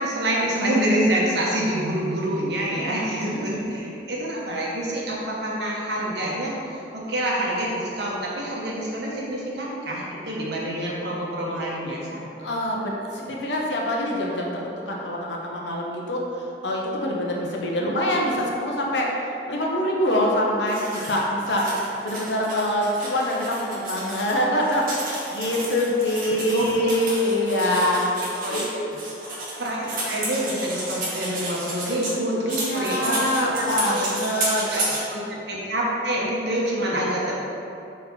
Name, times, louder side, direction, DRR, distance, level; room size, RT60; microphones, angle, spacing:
voice 1, 0.0-12.2 17.8-18.3 26.5-27.0 28.4-28.8 29.6-34.1 34.7-37.3, right 1 dB, 75° right, -4 dB, 1.2 m, -27 dB
voice 2, 3.2-3.6 12.4-16.2 16.6-19.1 19.5-21.6 22.0-28.0 28.5-28.6 32.5-34.7, left 1 dB, 85° left, -2 dB, 0.9 m, -25 dB
sound 1, 20.7-24.3 24.6-32.1 32.5-35.0, right 1 dB, 50° right, 1.4 m, -31 dB
4.3 x 4.2 x 5.6 m, 2.8 s
head